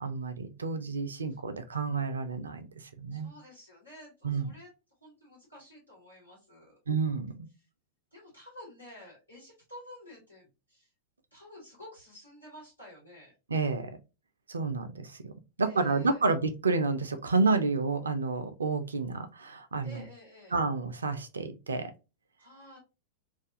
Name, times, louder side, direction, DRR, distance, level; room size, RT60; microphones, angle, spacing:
voice 1, 0.0-2.7 3.0-3.3 4.2-4.5 6.9-7.5 13.5-13.9 14.5-15.3 15.6-20.0 20.5-21.9, right 4 dB, 75° right, 8 dB, 0.4 m, -30 dB
voice 2, 3.1-4.7 5.0-6.8 8.1-10.9 11.3-13.3 15.6-16.3 19.8-20.6 22.4-22.8, left 1 dB, 85° left, -6 dB, 1.4 m, -51 dB
2.4 x 2.2 x 2.5 m, 0.28 s
figure-of-eight pair, 90°, 0 cm